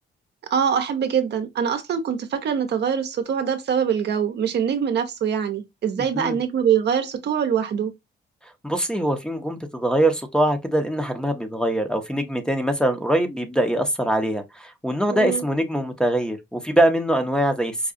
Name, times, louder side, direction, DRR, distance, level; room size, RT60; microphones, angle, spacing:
voice 1, 0.4-7.9 15.1-15.4, right 7 dB, 60° right, 0.7 m, -23 dB
voice 2, 8.6-17.9, right 1 dB, 5° left, 0.8 m, -23 dB
4.8 x 2.3 x 2.5 m
cardioid pair, 90°, 20 cm